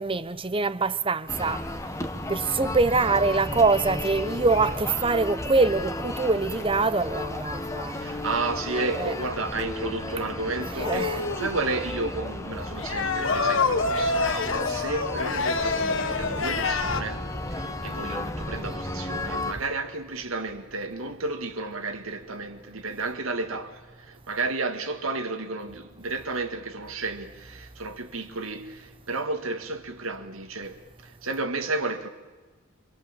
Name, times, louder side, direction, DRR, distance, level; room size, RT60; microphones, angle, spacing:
voice 1, 0.0-1.6 1.9-2.0 2.3-8.3 8.9-9.1 10.7-11.2, right 3 dB, 25° right, 0.8 m, -24 dB
sound 1, 1.3-19.5, left 1 dB, 15° left, 1.3 m, -34 dB
voice 2, 7.9-32.1, right 3 dB, 90° right, 2.0 m, -32 dB
sound 2, 10.7-11.6 12.8-17.0, left 4 dB, 70° left, 1.6 m, -26 dB
28.5 x 25.5 x 7.4 m
head